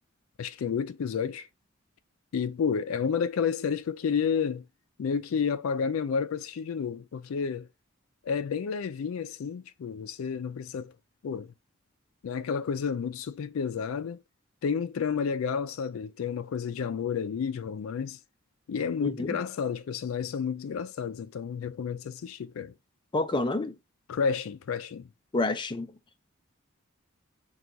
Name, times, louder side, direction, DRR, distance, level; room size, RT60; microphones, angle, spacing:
voice 1, 0.4-1.5 2.3-4.7 5.0-7.7 8.2-10.9 11.2-11.5 12.2-14.2 14.6-18.2 18.7-22.7 24.1-25.1, left 6 dB, 80° left, 0.4 m, -30 dB
voice 2, 19.0-19.4 23.1-23.7 25.3-25.9, left 2 dB, 25° left, 0.5 m, -28 dB
4.6 x 2.3 x 3.9 m
head